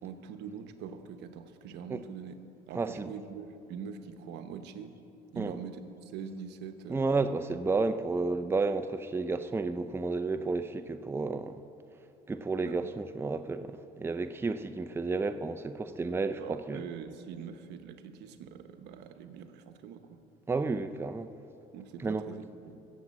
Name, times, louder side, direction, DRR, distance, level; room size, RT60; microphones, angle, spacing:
voice 1, 0.0-2.4 2.7-4.9 5.3-7.1 12.6-12.9 16.4-20.2 21.7-22.8, right 7 dB, 85° right, 8 dB, 1.0 m, -43 dB
voice 2, 2.7-3.1 5.4-5.5 6.9-11.6 12.3-16.8 20.5-21.3 22.0-22.2, right 3 dB, 15° right, 9 dB, 0.5 m, -31 dB
16.0 x 7.3 x 7.5 m, 2.7 s
cardioid pair, 110°, 17 cm